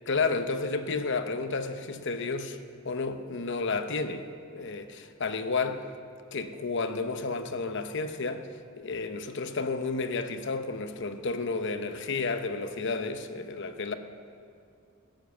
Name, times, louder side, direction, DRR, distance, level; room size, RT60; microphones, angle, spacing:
voice 1, 0.1-2.6 2.8-4.2 4.5-5.8 6.3-8.5 8.8-13.9, left 4 dB, 55° left, 8 dB, 0.9 m, -31 dB
14.5 x 10.5 x 7.1 m, 2.4 s
head